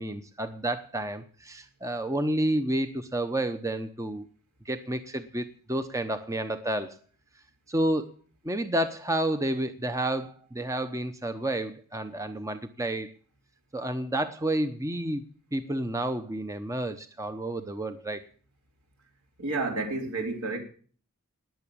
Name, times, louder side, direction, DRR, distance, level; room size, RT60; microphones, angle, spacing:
voice 1, 0.0-4.2 4.7-7.0 7.7-8.1 8.4-13.1 13.7-15.2 15.5-18.2, right 1 dB, 15° right, 0.8 m, -30 dB
voice 2, 19.4-20.6, right 3 dB, 70° right, 3.7 m, -30 dB
19.5 x 7.1 x 8.6 m
head